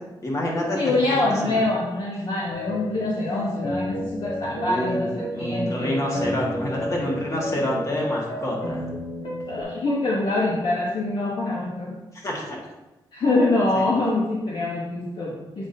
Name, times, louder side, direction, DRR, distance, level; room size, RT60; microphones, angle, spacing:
voice 1, 0.2-1.7 4.6-5.0 5.3-8.9 12.1-12.6 13.8-13.9, left 1 dB, 40° left, -2 dB, 1.8 m, -27 dB
voice 2, 0.7-6.0 9.5-11.9 13.1-15.7, left 2 dB, 65° left, -4 dB, 1.1 m, -25 dB
sound 1, 2.5-9.6, left 1 dB, 85° left, 1.6 m, -31 dB
8.0 x 5.2 x 2.8 m, 1.0 s
wide cardioid pair, 105°, 9 cm